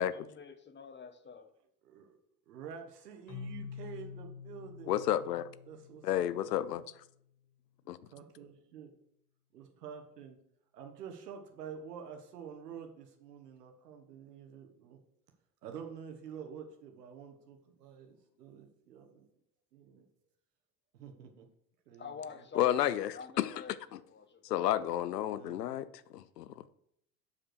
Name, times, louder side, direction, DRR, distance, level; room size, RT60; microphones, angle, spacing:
voice 1, 0.0-1.5 22.0-24.7, left 6 dB, 25° left, 1.2 m, -48 dB
voice 2, 1.8-2.2 2.5-6.8 8.0-8.9 9.5-10.4 10.7-15.0 15.6-19.3 19.7-20.1 20.9-21.5 21.8-22.5 25.3-25.8, right 7 dB, 85° right, 1.5 m, -49 dB
Keyboard (musical), 3.3-7.0, left 6 dB, 40° left, 2.4 m, -47 dB
voice 3, 4.9-5.5 6.0-6.8 7.9-8.0 22.6-23.6 23.9-24.0 24.4-25.9 26.1-26.7, left 12 dB, 85° left, 0.6 m, -31 dB
7.2 x 5.3 x 6.5 m
hypercardioid pair, 75°, 46 cm